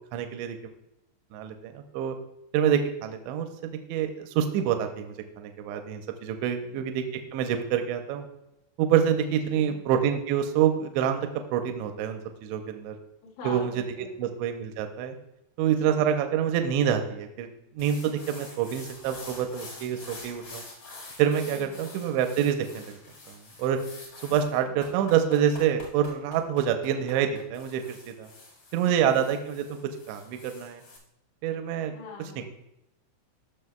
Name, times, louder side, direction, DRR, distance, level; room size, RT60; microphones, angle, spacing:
voice 1, 0.1-0.7 1.3-2.2 2.5-3.5 3.9-7.0 7.3-8.3 8.8-13.0 13.4-13.7 14.2-15.2 15.6-17.5 17.7-20.6 21.2-23.0 23.3-23.8 24.2-28.3 28.7-29.8 30.1-30.8 31.4-31.9, right 9 dB, 85° right, 6 dB, 2.8 m, -27 dB
voice 2, 6.5-6.8 9.5-9.8 13.2-14.3 15.8-16.1 21.4-21.8 24.3-24.4 24.7-25.0 28.9-29.3 31.9-32.5, left 4 dB, 75° left, -4 dB, 3.9 m, -43 dB
sound 1, 17.8-31.0, left 2 dB, 50° left, 1.4 m, -46 dB
14.5 x 6.1 x 2.2 m, 0.87 s
omnidirectional pair, 5.4 m